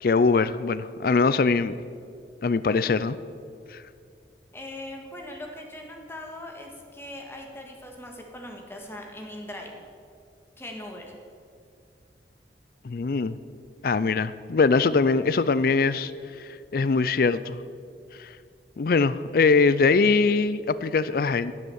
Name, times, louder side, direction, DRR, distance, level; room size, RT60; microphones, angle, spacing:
voice 1, 0.0-1.7 2.4-3.2 3.7-3.8 12.8-13.4 13.8-16.1 16.4-17.6 18.2-18.3 18.8-21.5, left 4 dB, 55° left, 15 dB, 0.4 m, -22 dB
voice 2, 4.5-9.7 10.6-11.1, left 1 dB, 15° left, 1 dB, 1.8 m, -40 dB
11.0 x 8.0 x 9.8 m, 2.3 s
head